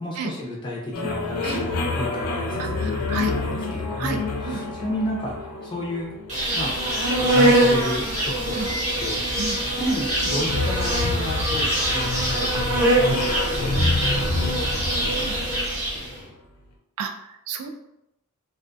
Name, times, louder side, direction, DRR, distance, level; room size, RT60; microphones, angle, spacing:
voice 1, 0.0-6.1 6.5-6.7 7.1-8.7 9.0-9.2 9.8-12.5 13.0-16.3, left 1 dB, 20° left, -3 dB, 0.4 m, -32 dB
sound 1, 0.9-16.3, left 3 dB, 90° left, 0.4 m, -29 dB
voice 2, 2.6-3.3 4.0-4.2 4.5-4.6 8.5-8.7 9.4-9.6 12.5-12.6 15.2-15.4 17.0-17.7, right 6 dB, 80° right, 6 dB, 0.3 m, -32 dB
Insect, 6.3-16.1, right 1 dB, 35° right, 0.8 m, -23 dB
2.3 x 2.2 x 2.5 m, 0.86 s
head